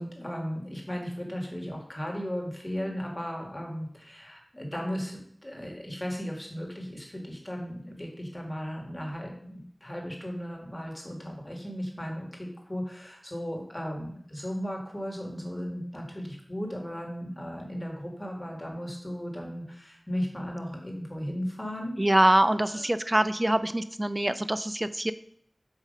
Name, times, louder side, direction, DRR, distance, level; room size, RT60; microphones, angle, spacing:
voice 1, 0.0-21.9 22.7-22.8, equal, 25° left, 0 dB, 1.9 m, -36 dB
voice 2, 22.0-25.1, right 1 dB, 25° right, 12 dB, 0.4 m, -24 dB
7.7 x 3.1 x 5.3 m, 0.65 s
wide cardioid pair, 50°, 0 cm